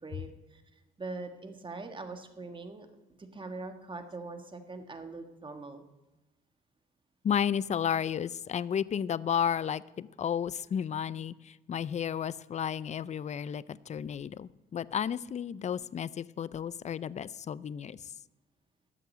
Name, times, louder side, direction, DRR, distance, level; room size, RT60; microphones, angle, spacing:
voice 1, 0.0-2.9 3.3-5.8, right 3 dB, 25° right, 6 dB, 1.5 m, -42 dB
voice 2, 7.2-18.0, left 8 dB, 35° left, 19 dB, 0.4 m, -32 dB
12.5 x 6.6 x 8.5 m, 1.0 s
cardioid pair, 90°, 20 cm